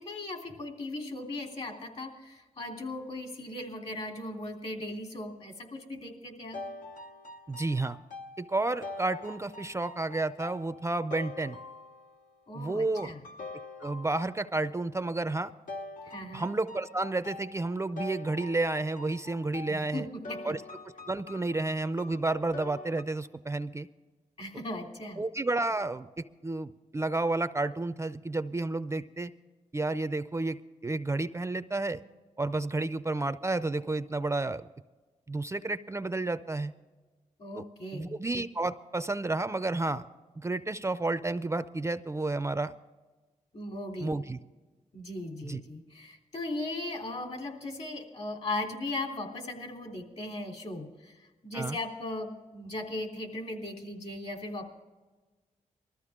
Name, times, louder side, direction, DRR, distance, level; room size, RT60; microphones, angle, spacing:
voice 1, 0.0-6.6 12.5-13.2 16.0-16.5 19.7-20.5 24.4-25.2 37.4-38.2 43.5-44.2 44.9-54.7, left 2 dB, 55° left, 2 dB, 3.2 m, -38 dB
sound 1, 6.5-12.3 13.0-14.6 15.7-23.0, left 2 dB, 75° left, 1.0 m, -44 dB
voice 2, 7.5-8.0 8.4-11.6 12.5-13.1 13.8-15.5 16.3-20.1 20.4-20.6 21.1-23.9 25.2-29.3 29.7-32.0 32.4-34.7 35.3-36.7 37.5-37.6 37.9-40.0 40.4-42.7 44.0-44.4 45.4-45.6 51.5-51.8, right 2 dB, 20° right, 12 dB, 0.4 m, -31 dB
20.5 x 14.0 x 3.6 m, 1.3 s
cardioid pair, 75°, 14 cm